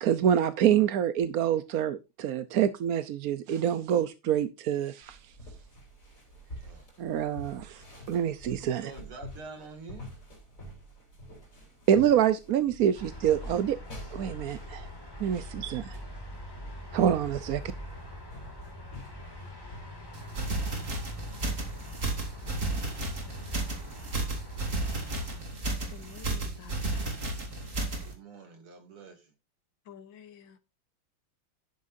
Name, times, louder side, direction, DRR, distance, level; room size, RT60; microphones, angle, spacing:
voice 1, 0.0-5.2 7.0-7.8 8.1-8.9 11.9-13.8 14.1-14.9 15.2-16.0 16.9-17.6, right 9 dB, 65° right, 0.9 m, -26 dB
sound 1, 5.0-23.8, equal, 40° left, 4.2 m, -48 dB
voice 2, 8.7-10.1 28.0-29.3, right 4 dB, 85° right, 3.3 m, -47 dB
sound 2, 12.9-25.4, left 1 dB, 10° left, 2.2 m, -43 dB
sound 3, 20.1-28.1, right 2 dB, 35° right, 2.8 m, -33 dB
voice 3, 25.9-27.2 29.9-30.6, left 8 dB, 65° left, 1.8 m, -50 dB
11.5 x 9.5 x 2.7 m
omnidirectional pair, 2.3 m